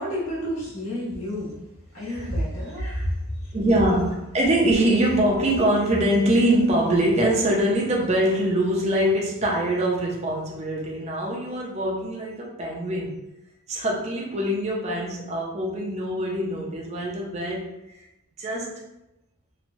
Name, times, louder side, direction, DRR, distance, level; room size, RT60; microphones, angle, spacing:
voice 1, 0.0-1.6 1.9-3.1 3.4-3.7, equal, 80° left, -7 dB, 1.2 m, -29 dB
voice 2, 2.0-2.3 3.5-13.2 13.7-17.7 18.4-18.8, right 1 dB, 30° right, -2 dB, 0.5 m, -23 dB
3.0 x 2.2 x 2.6 m, 0.91 s
head